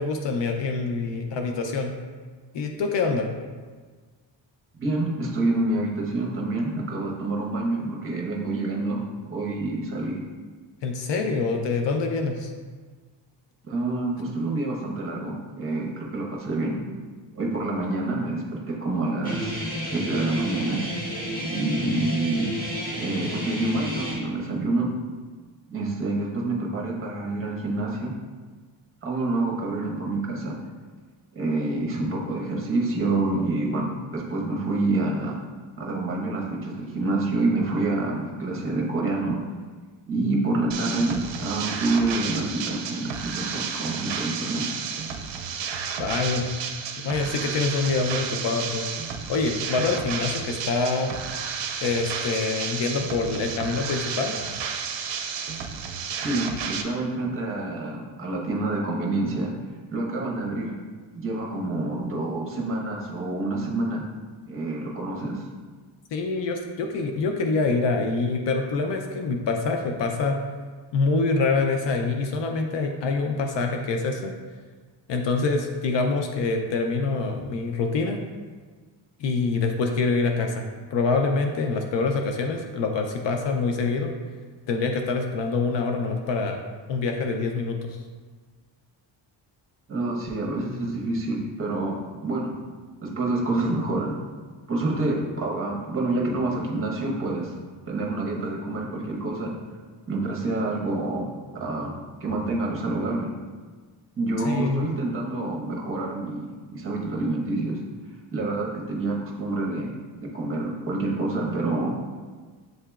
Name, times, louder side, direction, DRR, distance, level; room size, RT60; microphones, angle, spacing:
voice 1, 0.0-1.9 2.5-3.3 10.8-12.5 46.0-46.5 47.0-48.9 49.3-51.1 51.8-54.3 66.1-70.4 70.9-74.3 75.1-78.2 79.2-84.1 84.7-86.6 86.9-88.0 104.4-104.9, left 4 dB, 70° left, 3 dB, 0.5 m, -25 dB
voice 2, 4.7-10.2 13.6-16.8 17.3-20.8 21.4-22.5 23.0-24.9 25.7-28.1 29.0-30.6 31.3-35.4 35.8-39.4 40.1-44.6 56.2-59.5 59.9-60.7 61.1-64.0 64.5-65.4 89.9-92.6 93.0-94.2 94.7-97.5 97.9-99.5 100.1-103.3 104.2-107.8 108.3-111.9, right 2 dB, 30° right, -2 dB, 0.9 m, -27 dB
Guitar, 19.2-24.1, equal, 20° left, 1.2 m, -31 dB
sound 1, 40.7-56.8, right 6 dB, 70° right, 0.6 m, -32 dB
7.7 x 2.8 x 2.3 m, 1.5 s
cardioid pair, 125°, 46 cm